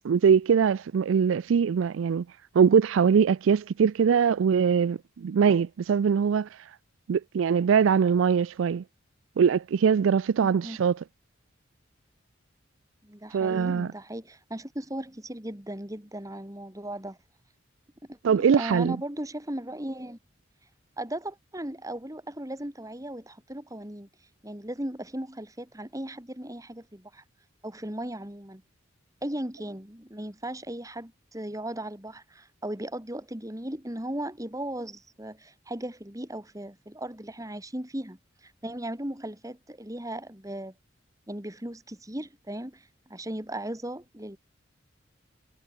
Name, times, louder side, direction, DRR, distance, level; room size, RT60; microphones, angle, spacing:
voice 1, 0.0-2.3 2.5-6.6 7.1-8.8 9.4-11.0 13.3-13.9 18.2-19.0, right 6 dB, 85° right, 0.4 m, -22 dB
voice 2, 10.4-10.8 13.0-17.2 18.1-20.2 21.0-24.1 24.4-27.2 27.6-28.6 29.2-40.7 41.3-44.4, right 1 dB, 15° right, 2.6 m, -37 dB
head